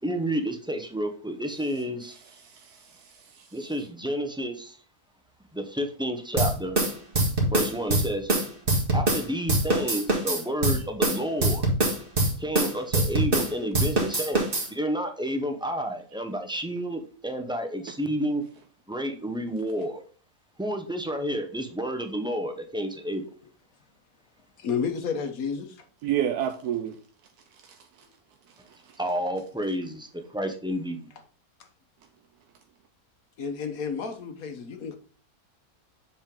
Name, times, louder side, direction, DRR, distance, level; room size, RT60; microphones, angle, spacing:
voice 1, 0.0-2.2 3.5-4.8 5.5-6.8 7.5-8.3 8.9-11.7 12.4-18.4 18.9-20.0 20.6-23.2 29.0-31.0, equal, 5° right, 5 dB, 0.6 m, -30 dB
voice 2, 2.4-3.4 26.0-27.0 27.6-27.7, right 10 dB, 85° right, 6 dB, 1.2 m, -30 dB
sound 1, 6.4-9.2 9.5-13.5 13.7-14.7, right 2 dB, 35° right, 1.9 m, -23 dB
voice 3, 24.6-25.8 33.4-35.0, left 6 dB, 70° left, 7 dB, 1.4 m, -31 dB
7.2 x 5.0 x 3.7 m, 0.42 s
omnidirectional pair, 1.6 m